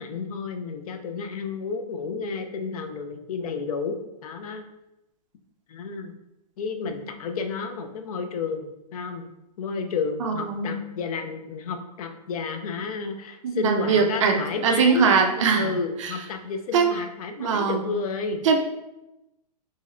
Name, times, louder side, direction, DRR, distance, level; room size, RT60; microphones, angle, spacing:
voice 1, 0.0-4.6 5.7-6.1 6.6-9.3 9.6-15.1 15.5-18.4, left 4 dB, 60° left, 6 dB, 0.4 m, -31 dB
voice 2, 10.2-10.7 13.4-15.7 16.0-16.1 16.7-16.9 17.4-17.9 18.4-18.6, right 5 dB, 50° right, 4 dB, 0.4 m, -22 dB
3.0 x 2.7 x 2.4 m, 0.91 s
hypercardioid pair, 165°, 21 cm